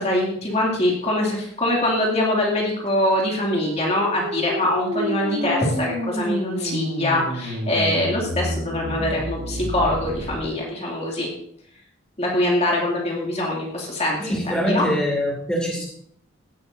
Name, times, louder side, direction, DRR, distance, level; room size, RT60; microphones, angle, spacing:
voice 1, 0.0-11.3 12.2-14.8, left 1 dB, 30° left, -2 dB, 2.5 m, -23 dB
sound 1, 3.3-10.4, equal, 85° right, 2.9 m, -30 dB
voice 2, 14.2-15.8, equal, 5° left, -1 dB, 2.4 m, -23 dB
16.5 x 11.5 x 2.7 m, 0.66 s
head